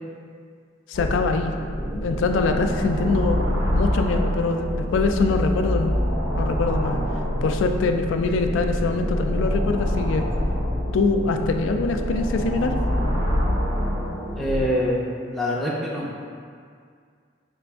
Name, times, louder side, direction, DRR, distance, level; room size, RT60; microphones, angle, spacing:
voice 1, 0.9-1.5 1.9-5.9 6.4-7.0 7.4-10.3 10.9-12.7, left 3 dB, 90° left, 6 dB, 0.3 m, -23 dB
sound 1, 0.9-14.7, equal, 90° right, 1.0 m, -25 dB
voice 2, 14.4-16.1, equal, ahead, -6 dB, 0.4 m, -25 dB
5.0 x 2.5 x 3.4 m, 2.1 s
head